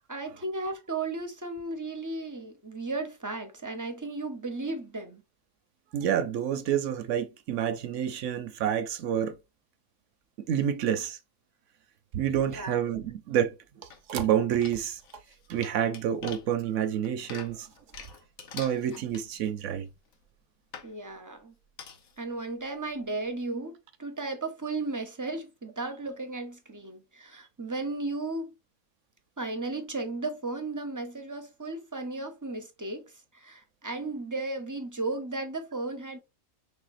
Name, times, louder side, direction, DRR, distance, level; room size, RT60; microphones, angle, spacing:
voice 1, 0.1-5.2 12.5-12.8 20.8-21.5 22.2-28.5 29.4-36.2, right 2 dB, 25° right, 0.4 m, -35 dB
voice 2, 5.9-9.4 10.4-11.2 12.1-15.0 15.5-17.7 18.5-19.9, right 9 dB, 65° right, 0.8 m, -28 dB
sound 1, 13.9-14.3 14.6-19.6 20.1-20.2 20.7-20.9 21.8-22.2 22.6-22.7 22.9-23.0, left 7 dB, 75° left, 1.3 m, -46 dB
5.6 x 3.4 x 2.5 m
omnidirectional pair, 1.5 m